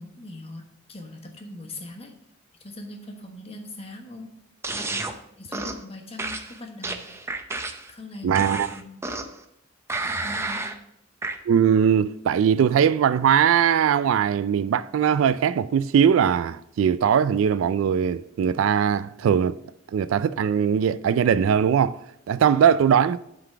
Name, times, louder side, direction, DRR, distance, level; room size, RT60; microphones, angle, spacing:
voice 1, 0.0-2.1 2.6-4.4 4.9-7.1 7.9-9.0 10.2-10.7, left 2 dB, 30° left, 1.2 m, -41 dB
sound 1, 4.6-5.1 5.5-5.8 6.2-7.9 8.3-9.4 9.9-10.8 11.2-11.4, right 2 dB, 15° right, 0.5 m, -31 dB
voice 2, 8.2-8.7 11.5-19.6 19.9-22.0 22.3-23.2, right 8 dB, 75° right, 0.3 m, -20 dB
8.0 x 3.9 x 5.7 m
head